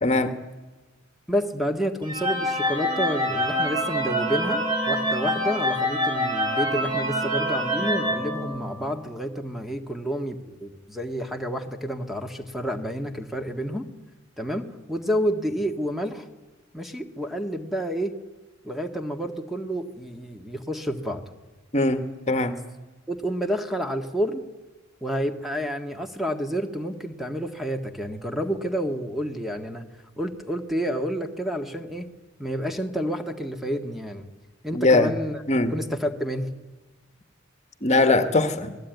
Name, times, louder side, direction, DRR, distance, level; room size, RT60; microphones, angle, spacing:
voice 1, 0.0-0.3 21.7-22.6 34.7-35.1 35.5-35.7 37.8-38.8, left 2 dB, 35° left, 9 dB, 1.6 m, -21 dB
voice 2, 1.3-13.9 14.4-16.3 16.7-18.1 18.6-21.2 23.1-24.4 25.0-29.9 30.2-32.1 32.4-34.3 34.6-35.4 35.7-36.5, equal, ahead, 5 dB, 1.7 m, -29 dB
sound 1, 2.0-9.0, equal, 25° right, 5.5 m, -26 dB
28.0 x 20.0 x 9.3 m, 1.2 s
head